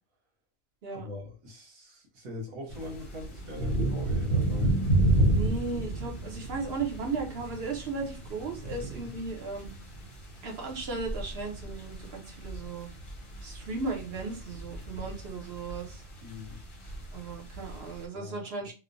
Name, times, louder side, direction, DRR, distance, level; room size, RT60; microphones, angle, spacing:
voice 1, 0.9-4.8 9.0-9.2 16.2-16.6 18.1-18.4, left 2 dB, 80° right, 1 dB, 1.3 m, -42 dB
sound 1, 2.7-18.0, right 1 dB, 30° left, 0.6 m, -32 dB
voice 2, 5.2-9.7 10.4-12.9 13.4-16.0 17.1-18.7, right 4 dB, 60° right, 1 dB, 0.8 m, -36 dB
3.0 x 2.0 x 2.5 m, 0.33 s
omnidirectional pair, 1.4 m